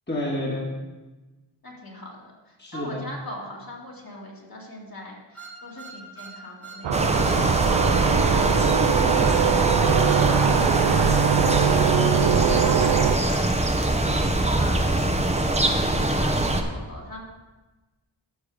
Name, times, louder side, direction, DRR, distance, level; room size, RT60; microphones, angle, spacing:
voice 1, 0.1-0.7 2.6-3.0, left 1 dB, 25° left, -4 dB, 1.8 m, -29 dB
voice 2, 1.6-17.2, left 1 dB, 50° left, -3 dB, 2.5 m, -41 dB
sound 1, 5.4-6.9 7.1-7.4 7.7-8.0 8.4-8.6 9.1-9.4 10.0-10.2, right 4 dB, 5° left, 1.5 m, -42 dB
sound 2, 6.8-13.1, right 9 dB, 75° right, 0.5 m, -22 dB
sound 3, 6.9-16.6, right 1 dB, 15° right, 0.9 m, -23 dB
13.5 x 5.7 x 4.9 m, 1.2 s
wide cardioid pair, 90°, 45 cm